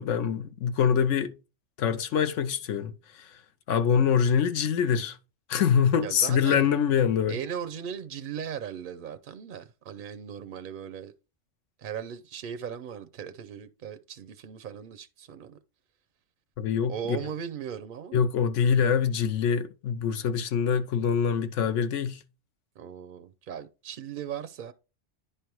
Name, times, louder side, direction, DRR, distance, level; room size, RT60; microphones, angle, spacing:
voice 1, 0.0-1.3 1.8-2.9 3.2-3.3 3.7-5.2 5.5-7.4 16.6-16.9 18.1-22.2, left 7 dB, 85° left, 1.1 m, -24 dB
voice 2, 6.0-6.7 7.3-11.1 11.8-15.6 16.9-18.2 22.8-24.7, right 8 dB, 60° right, 0.6 m, -38 dB
10.0 x 3.4 x 4.5 m
omnidirectional pair, 1.2 m